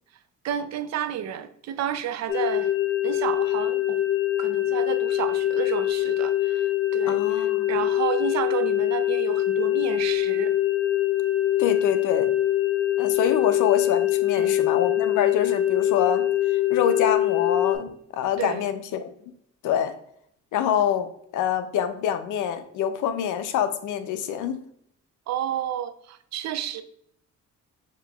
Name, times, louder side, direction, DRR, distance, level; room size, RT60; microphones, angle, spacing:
voice 1, 0.4-2.7 3.0-4.0 4.4-10.5 14.4-14.6 18.4-18.6 25.3-26.8, right 10 dB, 65° right, 11 dB, 0.5 m, -31 dB
sound 1, 2.3-17.8, left 13 dB, 45° left, 1.4 m, -23 dB
voice 2, 7.0-7.7 11.6-12.3 13.0-16.3 16.7-19.1 19.6-19.9 20.5-24.6, left 9 dB, 80° left, 9 dB, 0.6 m, -26 dB
6.6 x 2.9 x 2.3 m, 0.69 s
cardioid pair, 90°, 30 cm